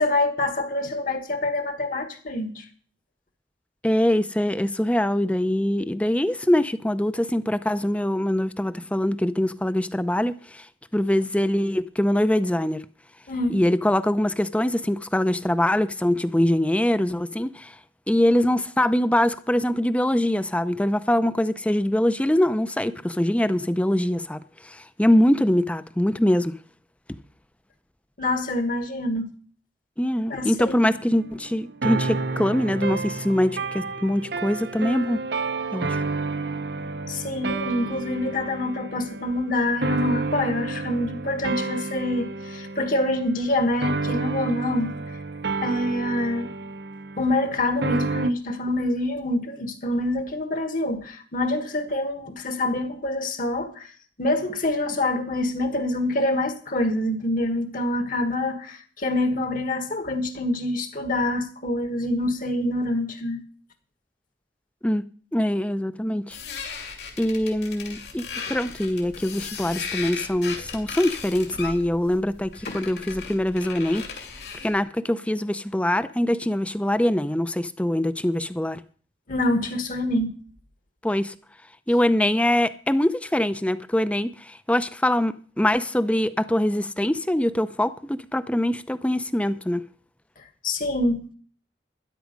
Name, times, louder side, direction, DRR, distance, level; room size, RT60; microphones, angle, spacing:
voice 1, 0.0-2.7 13.3-13.6 28.2-29.2 30.3-30.9 37.1-44.9 45.6-46.5 47.2-53.9 54.2-63.4 72.7-72.8 79.3-80.3 90.6-91.3, left 1 dB, 50° left, 1.5 m, -26 dB
voice 2, 3.8-10.6 10.9-12.8 13.5-17.7 18.1-26.6 30.0-35.2 35.7-36.0 64.8-65.0 65.3-66.4 67.2-74.0 74.6-78.8 81.0-81.3 81.9-89.8, left 1 dB, 5° left, 0.5 m, -23 dB
sound 1, 30.8-48.3, right 3 dB, 65° right, 0.9 m, -31 dB
sound 2, 66.3-74.8, left 5 dB, 70° left, 2.8 m, -36 dB
13.0 x 10.5 x 5.2 m
head